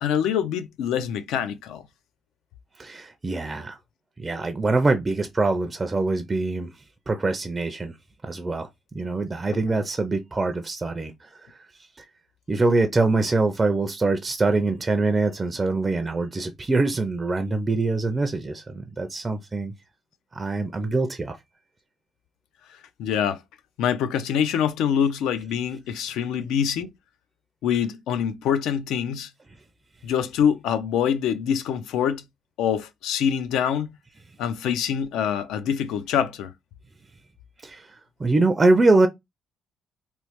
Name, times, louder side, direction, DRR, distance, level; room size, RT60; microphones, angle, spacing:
voice 1, 0.0-1.8 23.0-23.4 23.8-26.9 27.6-29.3 30.0-32.2 32.6-33.9 34.4-36.5, left 8 dB, 85° left, 0.4 m, -25 dB
voice 2, 2.8-3.8 4.2-6.7 7.1-8.0 8.2-11.6 12.5-19.7 20.3-21.4 37.6-37.9 38.2-39.1, right 3 dB, 20° right, 0.4 m, -24 dB
3.1 x 2.0 x 2.9 m
cardioid pair, 110°, 0 cm